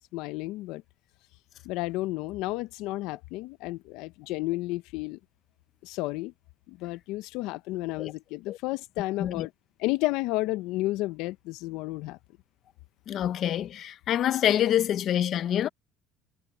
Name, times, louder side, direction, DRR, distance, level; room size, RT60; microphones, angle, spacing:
voice 1, 0.1-0.8 1.6-5.2 5.8-6.3 6.7-9.5 9.8-12.2, left 19 dB, 80° left, 0.6 m, -32 dB
voice 2, 13.1-15.7, left 11 dB, 50° left, 0.9 m, -26 dB
cardioid pair, 120°, 0 cm